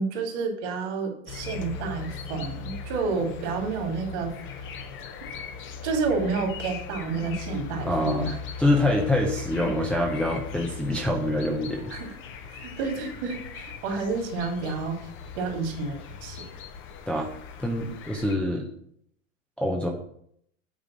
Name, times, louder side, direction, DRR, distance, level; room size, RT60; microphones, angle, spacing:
voice 1, 0.0-4.3 5.8-8.4 9.6-9.7 11.9-12.1 12.5-15.0 15.3-16.4, right 4 dB, 55° right, 2 dB, 2.6 m, -30 dB
sound 1, 1.3-18.4, left 6 dB, 30° left, 0.9 m, -39 dB
voice 2, 7.8-8.3 8.6-11.9 17.1-17.3 17.6-18.7 19.6-19.9, left 1 dB, 5° left, -1 dB, 0.6 m, -25 dB
8.5 x 3.7 x 6.1 m, 0.69 s
hypercardioid pair, 125°, 40 cm